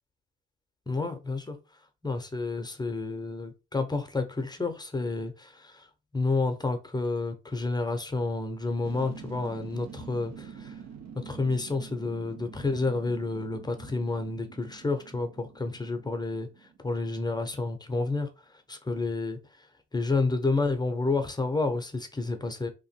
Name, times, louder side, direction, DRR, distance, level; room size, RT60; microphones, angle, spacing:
voice 1, 0.9-1.6 2.0-5.9 6.1-10.8 11.1-22.7, left 3 dB, 15° left, 6 dB, 0.7 m, -30 dB
sound 1, 8.8-17.4 17.7-17.8, right 7 dB, 60° right, 0.8 m, -46 dB
2.9 x 2.6 x 4.2 m, 0.29 s
cardioid pair, 90°, 30 cm